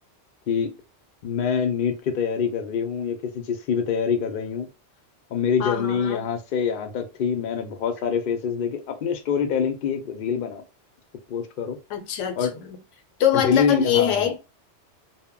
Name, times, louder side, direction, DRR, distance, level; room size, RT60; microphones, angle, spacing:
voice 1, 1.2-4.7 5.3-10.6 11.3-11.8 12.4-12.5 13.3-14.2, left 7 dB, 60° left, 0.6 m, -25 dB
voice 2, 5.6-6.2 11.9-12.7 13.2-14.4, left 9 dB, 80° left, 0.9 m, -23 dB
2.1 x 2.1 x 3.6 m
omnidirectional pair, 1.2 m